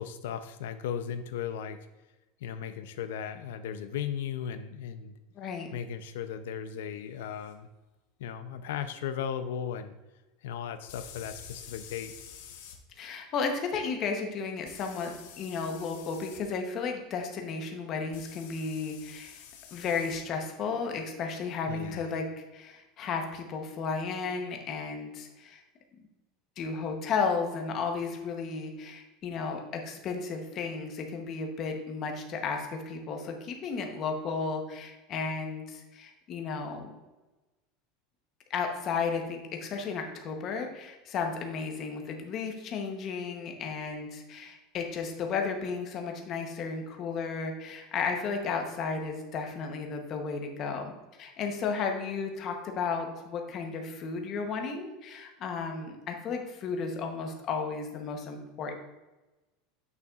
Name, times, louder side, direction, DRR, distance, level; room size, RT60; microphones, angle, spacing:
voice 1, 0.0-1.8 2.4-5.1 5.7-7.7 8.2-9.9 10.4-12.1 21.7-22.1, left 8 dB, 85° left, 10 dB, 0.5 m, -36 dB
voice 2, 5.3-5.7 13.0-19.4 19.7-25.6 26.6-36.9 38.5-50.9 51.2-58.7, left 5 dB, 30° left, 3 dB, 0.8 m, -34 dB
sound 1, 7.4-7.5 10.9-12.8 14.6-16.4 18.1-20.2, left 8 dB, 70° left, 0.9 m, -48 dB
8.2 x 6.7 x 2.4 m, 1.1 s
supercardioid pair, 180°, 0 cm